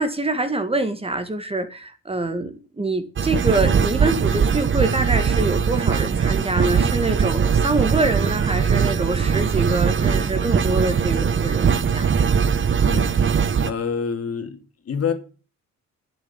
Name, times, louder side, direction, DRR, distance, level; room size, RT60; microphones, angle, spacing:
voice 1, 0.0-12.1, right 2 dB, 20° right, 1.9 m, -25 dB
sound 1, 3.2-13.7, right 6 dB, 40° right, 1.1 m, -20 dB
voice 2, 13.6-15.1, left 6 dB, 50° left, 2.9 m, -27 dB
11.5 x 7.3 x 8.9 m
cardioid pair, 90°, 30 cm